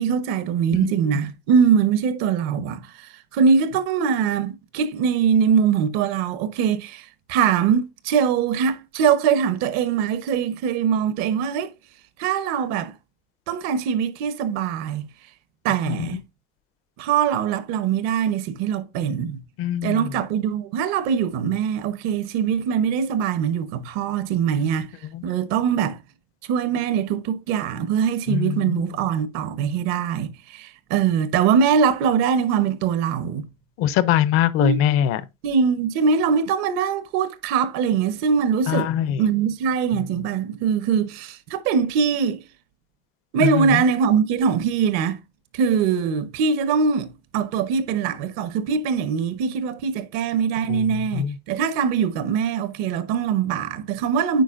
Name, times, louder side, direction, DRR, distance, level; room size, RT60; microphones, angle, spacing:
voice 1, 0.0-11.7 12.2-12.9 13.5-15.1 15.6-16.2 17.0-19.4 19.8-24.9 25.2-26.0 26.5-33.5 34.6-34.8 35.4-38.9 39.2-42.4 43.3-45.2 45.5-54.4, right 7 dB, 65° right, 1.0 m, -22 dB
voice 2, 19.6-20.1 25.1-25.2 28.3-28.9 33.8-35.2 38.7-39.3 43.4-43.8 50.7-51.3, left 10 dB, 50° left, 0.6 m, -22 dB
9.0 x 4.7 x 2.5 m
cardioid pair, 160°, 29 cm